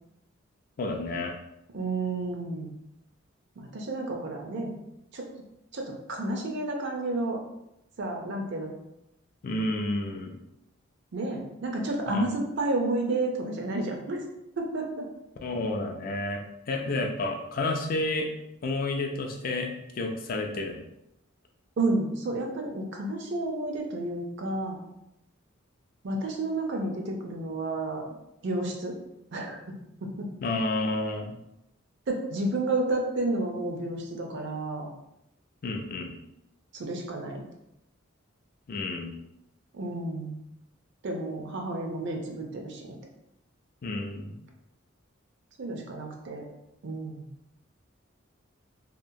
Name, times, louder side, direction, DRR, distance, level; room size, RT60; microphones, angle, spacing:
voice 1, 0.8-1.3 9.4-10.3 12.1-12.3 15.4-16.4 16.7-18.3 18.6-19.7 20.0-20.8 30.4-31.3 35.6-36.1 38.7-39.1 43.8-44.4, left 2 dB, 45° left, 2 dB, 0.4 m, -30 dB
voice 2, 1.7-2.7 3.6-4.7 5.1-5.3 5.7-7.4 8.0-8.7 11.1-14.2 14.6-15.1 21.8-24.8 26.0-28.1 28.4-29.0 29.3-29.6 30.0-30.3 32.1-34.9 36.7-37.5 39.7-40.4 41.0-43.0 45.6-46.4 46.8-47.3, right 2 dB, 60° right, 1 dB, 0.4 m, -31 dB
2.8 x 2.0 x 2.6 m, 0.85 s
head